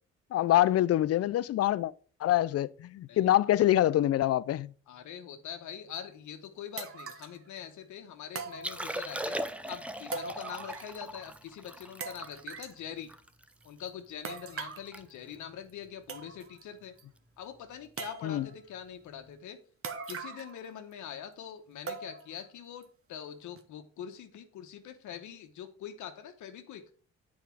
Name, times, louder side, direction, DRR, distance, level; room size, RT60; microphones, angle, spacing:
voice 1, 0.3-1.9 2.2-4.7 18.2-18.5, left 13 dB, 55° left, 0.4 m, -25 dB
voice 2, 4.9-9.4 9.7-13.1 13.6-16.9 17.4-19.6 20.1-26.8, left 9 dB, 75° left, 1.0 m, -44 dB
sound 1, 6.0-6.1 6.8-7.4 8.3-9.2 10.1-11.0 11.3-11.4 12.0-12.8 14.2-14.9 15.7-15.8 16.1-16.6 17.0-17.1 18.0-18.6 19.8-20.6 20.9-21.0 21.9-22.4 22.8-22.9 23.6-23.7, right 5 dB, 50° right, 1.0 m, -41 dB
Liquid, 8.5-13.9 14.4-14.5 14.7-15.0 15.3-15.5 16.1-16.4 17.8-17.9, right 1 dB, 5° right, 0.5 m, -39 dB
8.2 x 4.8 x 4.6 m
cardioid pair, 90°, 30 cm